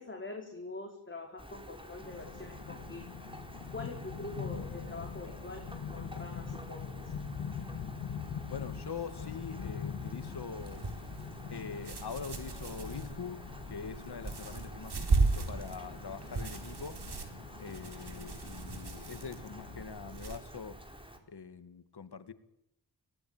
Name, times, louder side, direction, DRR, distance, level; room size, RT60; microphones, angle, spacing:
voice 1, 0.0-3.1 3.7-7.1, left 2 dB, 25° left, 0 dB, 4.7 m, -44 dB
Rain, 1.4-21.2, equal, 10° right, 4.6 m, -50 dB
sound 1, 2.0-19.8, left 6 dB, 85° left, 2.3 m, -44 dB
voice 2, 8.5-10.9 11.5-17.0 17.6-20.8 21.3-22.3, left 6 dB, 60° left, 11 dB, 2.3 m, -43 dB
sound 2, 10.6-20.4, right 3 dB, 60° right, 4.2 m, -36 dB
23.5 x 19.0 x 9.1 m, 0.82 s
cardioid pair, 65°, 44 cm